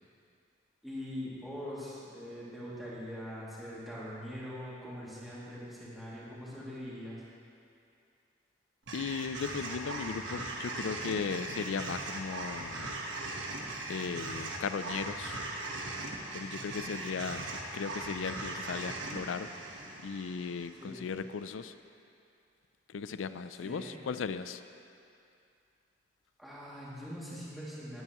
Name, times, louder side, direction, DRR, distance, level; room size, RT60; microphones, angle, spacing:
voice 1, 0.8-7.2 20.8-21.1 23.6-24.0 26.4-28.0, equal, ahead, -10 dB, 2.4 m, -42 dB
voice 2, 8.9-12.9 13.9-15.4 16.3-19.5 20.0-21.7 22.9-24.6, left 5 dB, 85° left, 12 dB, 0.4 m, -37 dB
sound 1, 8.9-21.2, right 2 dB, 75° right, 1.2 m, -39 dB
18.5 x 9.1 x 3.0 m, 2.5 s
head